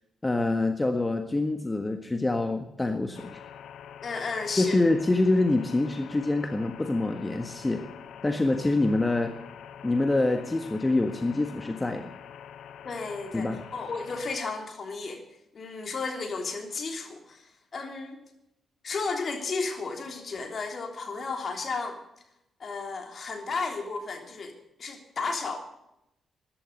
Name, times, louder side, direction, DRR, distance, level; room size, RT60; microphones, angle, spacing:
voice 1, 0.2-3.3 4.6-7.8 8.2-9.3 9.8-12.1 13.3-13.6, left 2 dB, 20° left, 6 dB, 1.6 m, -25 dB
sound 1, 3.1-14.4, left 8 dB, 70° left, 0.9 m, -45 dB
voice 2, 4.0-4.8 12.8-15.2 15.5-18.2 18.8-22.0 22.6-24.5 24.8-25.6, left 4 dB, 50° left, 3 dB, 3.3 m, -33 dB
14.0 x 11.5 x 6.6 m, 0.84 s
hypercardioid pair, 40°, 0 cm